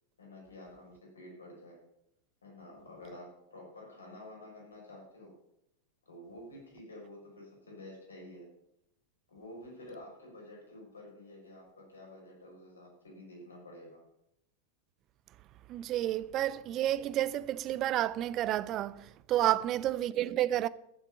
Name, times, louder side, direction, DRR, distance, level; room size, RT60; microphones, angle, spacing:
voice 1, 0.2-1.8 2.4-5.3 6.0-8.5 9.3-14.0 19.4-19.6, left 1 dB, 75° left, 5.6 m, -50 dB
voice 2, 15.7-20.7, right 13 dB, 35° right, 0.5 m, -30 dB
14.0 x 7.5 x 6.8 m
figure-of-eight pair, 90°, 0 cm